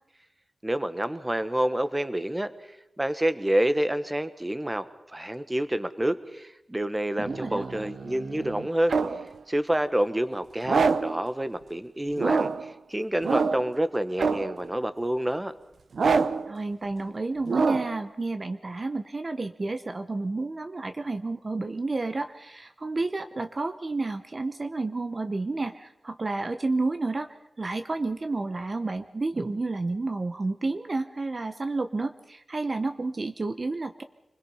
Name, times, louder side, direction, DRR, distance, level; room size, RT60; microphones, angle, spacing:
voice 1, 0.6-2.5 3.0-8.9 9.5-15.5, right 1 dB, 15° right, 12 dB, 1.3 m, -28 dB
voice 2, 7.2-7.7 16.5-27.3 27.6-34.0, right 3 dB, 40° right, 8 dB, 0.9 m, -30 dB
sound 1, 7.2-9.3 10.6-11.2 12.2-12.7 13.2-13.8 14.2-14.6 15.9-16.5 17.5-18.0, right 4 dB, 90° right, 0.8 m, -26 dB
27.0 x 21.0 x 5.6 m, 0.87 s
wide cardioid pair, 95°, 0 cm